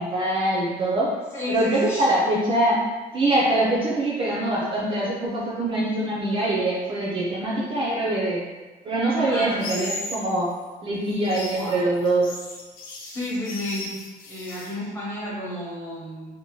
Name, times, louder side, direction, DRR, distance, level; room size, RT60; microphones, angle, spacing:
voice 1, 0.0-1.1 1.5-2.8 3.1-8.4 8.8-10.5 10.8-12.4, right 1 dB, 35° right, -5 dB, 0.4 m, -23 dB
voice 2, 1.3-2.0 9.2-9.5 11.5-11.8 12.9-13.9 14.3-16.4, left 1 dB, 15° left, -7 dB, 0.9 m, -32 dB
sound 1, 9.6-10.2 11.1-14.7, left 2 dB, 70° left, 0.5 m, -36 dB
2.7 x 2.1 x 2.9 m, 1.3 s
cardioid pair, 155°, 16 cm